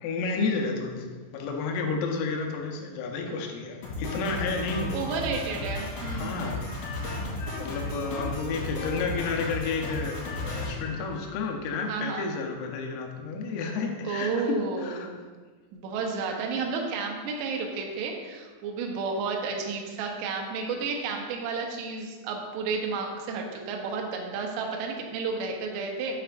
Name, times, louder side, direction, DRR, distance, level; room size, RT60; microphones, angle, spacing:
voice 1, 0.0-5.0 6.1-6.7 7.6-15.1, left 4 dB, 85° left, 2 dB, 3.5 m, -31 dB
Drum kit, 3.8-11.6, left 2 dB, 55° left, 3.3 m, -34 dB
voice 2, 4.9-6.5 11.9-12.3 14.0-15.0 15.7-26.2, right 4 dB, 80° right, 1 dB, 2.5 m, -31 dB
7.9 x 7.7 x 2.5 m, 1.4 s
omnidirectional pair, 5.9 m